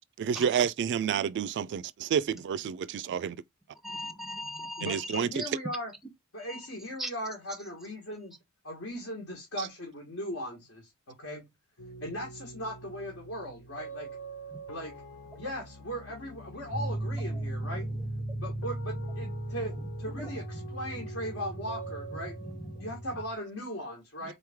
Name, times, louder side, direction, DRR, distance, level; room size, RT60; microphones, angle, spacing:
voice 1, 0.2-3.4 4.8-5.4 9.6-9.7, right 7 dB, 55° right, 0.3 m, -29 dB
voice 2, 3.8-5.5 6.4-6.6 7.0-7.1 7.5-7.6 14.5-14.6 15.3-15.4 16.5-16.6 17.3-18.4 19.2-20.7 20.9-21.1 22.1-22.2 22.4-22.9 24.2-24.3, equal, ahead, 0.6 m, -42 dB
voice 3, 4.8-5.9 6.3-8.3 8.6-11.4 12.0-14.2 14.7-15.0 15.4-17.9 18.4-22.4 22.8-24.3, equal, 65° left, 1.4 m, -38 dB
sound 1, 11.8-23.2, equal, 90° left, 0.9 m, -45 dB
sound 2, 16.7-23.3, right 2 dB, 30° left, 1.3 m, -37 dB
3.9 x 3.1 x 3.4 m
head